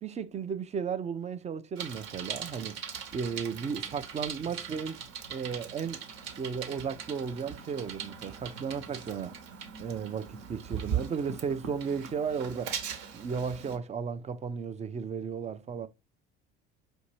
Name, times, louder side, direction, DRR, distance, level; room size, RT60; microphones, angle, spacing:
voice 1, 0.0-2.8 3.1-5.0 5.3-6.0 6.4-9.4 9.8-12.8 13.1-15.9, right 6 dB, 20° right, 0.4 m, -34 dB
Bicycle, 1.8-13.8, right 8 dB, 60° right, 1.1 m, -40 dB
5.2 x 2.7 x 3.0 m
hypercardioid pair, 80°, 31 cm